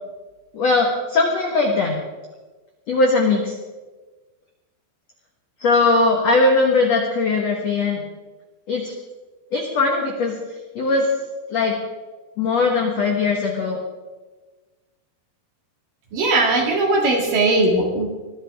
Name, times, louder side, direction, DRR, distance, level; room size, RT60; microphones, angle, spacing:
voice 1, 0.5-2.0 2.9-3.5 5.6-8.0 8.7-8.9 9.5-10.3 10.7-11.1 11.5-11.8 12.4-13.8, left 3 dB, 75° left, 1 dB, 1.5 m, -19 dB
voice 2, 16.1-18.1, right 2 dB, 55° right, 1 dB, 3.1 m, -19 dB
21.5 x 13.5 x 3.6 m, 1.3 s
omnidirectional pair, 5.4 m